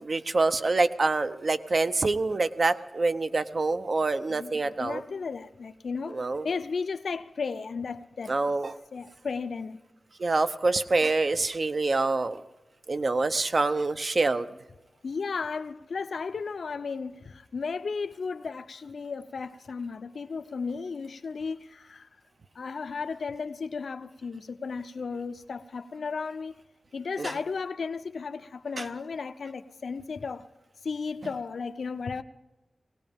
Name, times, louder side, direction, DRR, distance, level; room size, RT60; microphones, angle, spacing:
voice 1, 0.0-5.0 6.1-6.6 8.3-8.8 10.2-12.4 12.9-14.5 27.2-27.3 28.8-28.9 31.2-31.3, right 3 dB, 55° right, 0.7 m, -26 dB
voice 2, 4.3-6.2 6.4-8.4 8.9-9.8 15.0-22.1 22.5-26.6 26.9-30.5 30.8-32.2, left 5 dB, 90° left, 0.6 m, -34 dB
20.5 x 17.5 x 3.6 m
wide cardioid pair, 90°, 0 cm